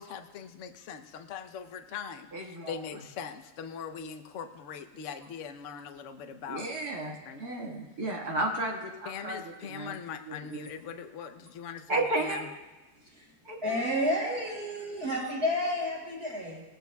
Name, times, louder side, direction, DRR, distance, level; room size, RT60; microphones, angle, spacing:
voice 1, 0.0-6.8 7.3-7.4 9.1-12.5, left 7 dB, 55° left, 7 dB, 0.8 m, -41 dB
voice 2, 2.3-2.8 6.5-9.9 10.3-10.6 11.9-12.5 13.5-13.9, right 2 dB, 55° right, -1 dB, 2.2 m, -33 dB
voice 3, 13.0-13.3 13.6-16.6, left 1 dB, 35° right, -6 dB, 5.5 m, -31 dB
19.5 x 14.5 x 2.3 m, 1.1 s
omnidirectional pair, 2.0 m